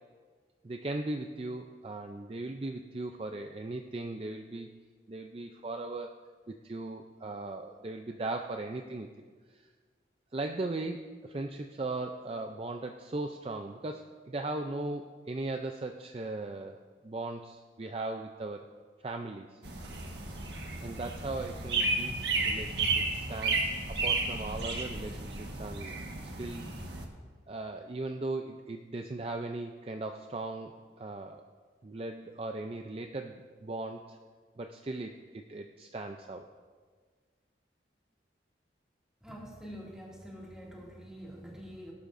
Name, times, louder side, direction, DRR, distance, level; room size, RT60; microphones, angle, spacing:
voice 1, 0.6-4.7 5.1-6.2 6.5-9.1 9.5-9.7 10.3-18.7 19.0-19.6 20.8-26.7 27.5-31.4 31.8-34.2 34.6-36.5, right 2 dB, 30° right, 4 dB, 0.4 m, -38 dB
sound 1, 19.6-27.0, right 3 dB, 75° right, 1.4 m, -33 dB
voice 2, 39.2-41.9, equal, 5° right, -4 dB, 2.2 m, -46 dB
18.0 x 12.0 x 2.6 m, 1.5 s
head